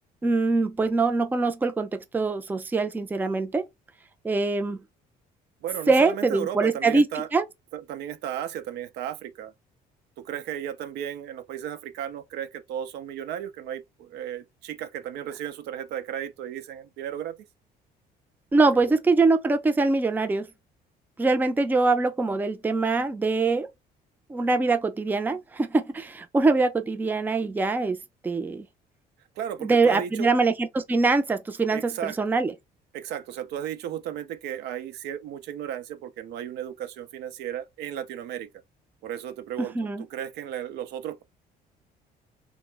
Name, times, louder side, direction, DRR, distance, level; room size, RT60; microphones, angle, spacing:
voice 1, 0.2-3.6 4.2-4.8 5.9-7.4 18.5-20.5 21.2-23.7 24.3-28.0 28.2-28.7 29.6-32.5 39.8-40.0, right 3 dB, 10° right, 0.4 m, -23 dB
voice 2, 5.6-7.3 7.7-9.5 10.2-17.4 18.8-18.9 29.4-30.3 31.7-32.2 32.9-38.5 39.0-41.2, right 10 dB, 80° right, 0.5 m, -34 dB
2.8 x 2.1 x 3.3 m
cardioid pair, 110°, 17 cm